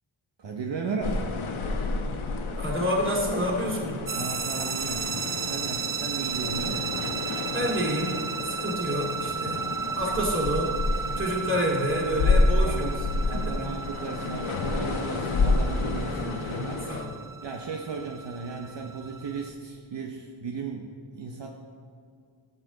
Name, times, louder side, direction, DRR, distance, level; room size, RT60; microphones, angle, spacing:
voice 1, 0.4-1.3 4.1-5.1 5.4-6.9 12.2-13.0 13.3-16.9 17.4-21.5, right 4 dB, 65° right, 1 dB, 0.9 m, -35 dB
sound 1, 1.0-17.0, left 3 dB, 85° left, 1.0 m, -29 dB
voice 2, 2.6-4.0 7.5-9.6 10.0-10.7 11.2-12.9 13.3-13.7 16.0-17.2, equal, 25° right, -2 dB, 2.4 m, -29 dB
sound 2, 4.1-19.5, right 6 dB, 45° right, 0.7 m, -34 dB
13.5 x 6.7 x 3.9 m, 2.3 s
wide cardioid pair, 85°, 47 cm